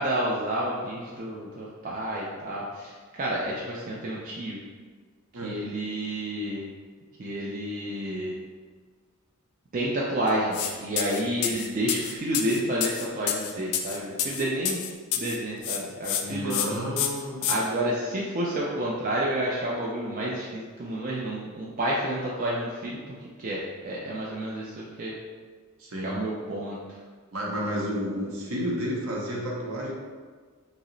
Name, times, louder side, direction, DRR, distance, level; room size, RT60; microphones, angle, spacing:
voice 1, 0.0-2.9 3.2-4.6 5.4-6.6 7.2-8.4 9.7-14.9 15.2-16.6 17.5-25.2 26.0-26.8, right 1 dB, 40° right, -5 dB, 0.3 m, -30 dB
sound 1, 10.5-10.7 11.0-15.4 15.6-16.2 16.5-16.7 17.0-17.6, left 9 dB, 80° left, 0.3 m, -28 dB
voice 2, 16.2-17.5 25.8-26.1 27.3-29.9, equal, 65° right, -3 dB, 0.7 m, -31 dB
2.8 x 2.0 x 3.8 m, 1.5 s
head